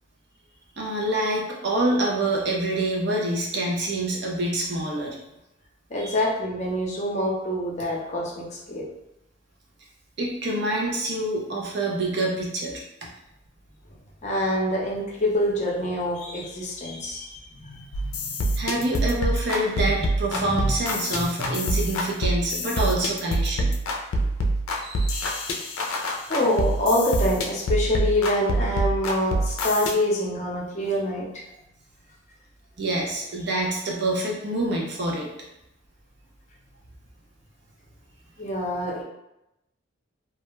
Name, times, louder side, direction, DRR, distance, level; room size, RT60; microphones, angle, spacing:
voice 1, 0.8-5.2 6.0-6.1 10.2-12.8 18.6-23.7 24.8-25.2 32.8-35.3, right 1 dB, 55° right, -2 dB, 0.6 m, -26 dB
voice 2, 5.9-8.8 14.2-18.6 20.0-20.1 20.3-20.8 21.1-21.6 26.3-31.3 38.4-39.0, left 1 dB, 35° left, -3 dB, 0.5 m, -26 dB
sound 1, 17.9-29.9, right 1 dB, 85° left, 0.4 m, -26 dB
2.3 x 2.1 x 3.0 m, 0.89 s
head